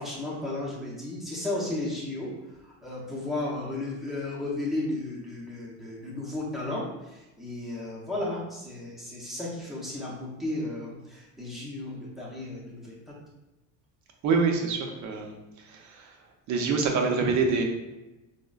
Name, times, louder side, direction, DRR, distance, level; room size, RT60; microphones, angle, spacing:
voice 1, 0.0-2.3 2.6-13.0, left 2 dB, ahead, -6 dB, 0.6 m, -34 dB
voice 2, 14.2-16.2 16.5-17.6, right 4 dB, 55° right, 2 dB, 0.6 m, -26 dB
5.0 x 2.1 x 2.3 m, 1.0 s
cardioid pair, 180°, 36 cm